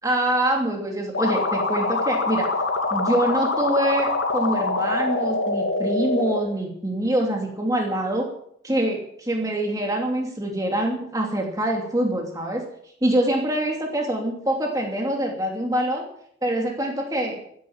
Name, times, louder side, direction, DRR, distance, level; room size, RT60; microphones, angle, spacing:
voice 1, 0.0-2.5 2.9-8.3 8.6-12.6 13.0-16.0 16.4-17.4, right 1 dB, 20° right, 0 dB, 2.8 m, -25 dB
sound 1, 1.1-6.4, left 3 dB, 85° left, 2.7 m, -24 dB
15.5 x 11.0 x 7.2 m, 0.67 s
head